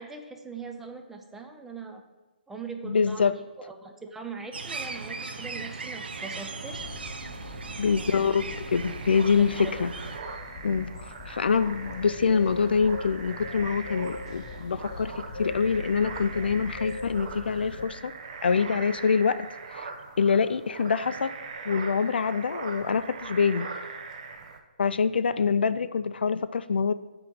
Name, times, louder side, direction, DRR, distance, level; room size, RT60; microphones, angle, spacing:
voice 1, 0.0-2.0 2.5-7.2 7.8-8.3 9.3-9.7 25.2-25.3, right 4 dB, 5° right, 4 dB, 0.4 m, -41 dB
voice 2, 2.8-3.4 7.8-9.9 10.6-10.9 11.3-18.1 18.4-19.9 20.2-21.4 21.7-23.7 24.8-26.9, left 5 dB, 80° left, 14 dB, 0.3 m, -25 dB
sound 1, 4.5-10.2, right 4 dB, 85° right, 0.7 m, -38 dB
sound 2, 6.7-17.9, left 3 dB, 35° left, 0.7 m, -42 dB
sound 3, 8.7-24.6, right 5 dB, 45° right, 0.7 m, -41 dB
8.5 x 3.0 x 6.3 m, 1.1 s
hypercardioid pair, 155°, 5 cm